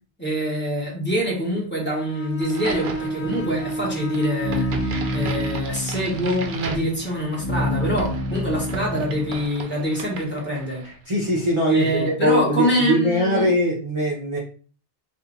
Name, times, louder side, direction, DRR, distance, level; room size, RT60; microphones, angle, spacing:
voice 1, 0.2-4.7 5.1-10.9 11.7-13.5, equal, 10° left, 1.2 m, -25 dB
Bowed string instrument, 1.9-5.7, right 3 dB, 80° left, 1.0 m, -30 dB
Crack, 2.4-11.0, right 4 dB, 80° right, 0.9 m, -37 dB
sound 1, 3.2-9.4, left 1 dB, 40° left, 0.5 m, -29 dB
voice 2, 10.8-14.4, equal, 35° right, 0.6 m, -21 dB
2.8 x 2.5 x 3.7 m
omnidirectional pair, 1.1 m